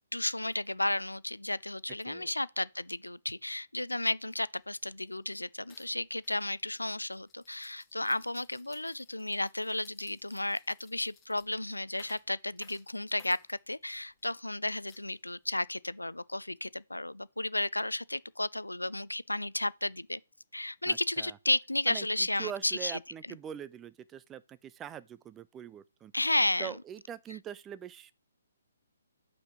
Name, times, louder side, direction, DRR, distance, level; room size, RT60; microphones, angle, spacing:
voice 1, 0.1-20.2 20.5-23.0 26.1-26.8, left 1 dB, 90° left, 0.3 m, -33 dB
sound 1, 4.6-4.7 5.0-5.3 5.7-14.2 14.9-15.6, left 5 dB, 15° left, 1.3 m, -61 dB
voice 2, 20.9-21.4 21.9-26.1 26.6-28.1, right 9 dB, 15° right, 0.4 m, -43 dB
5.7 x 5.2 x 5.9 m
figure-of-eight pair, 135°, 0 cm